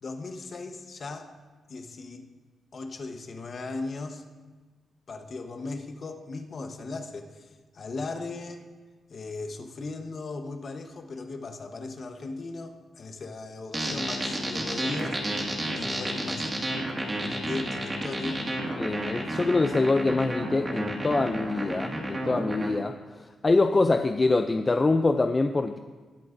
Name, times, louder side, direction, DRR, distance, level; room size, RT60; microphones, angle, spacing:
voice 1, 0.0-1.3 1.7-2.3 2.7-4.2 5.1-8.6 9.1-15.2 15.6-16.5 17.2-18.5, left 3 dB, 45° left, 5 dB, 1.0 m, -37 dB
sound 1, 13.7-22.7, right 1 dB, 20° right, 1.9 m, -31 dB
voice 2, 18.8-25.8, left 3 dB, 25° left, 7 dB, 0.3 m, -25 dB
20.0 x 7.9 x 2.6 m, 1.3 s
cardioid pair, 125°, 0 cm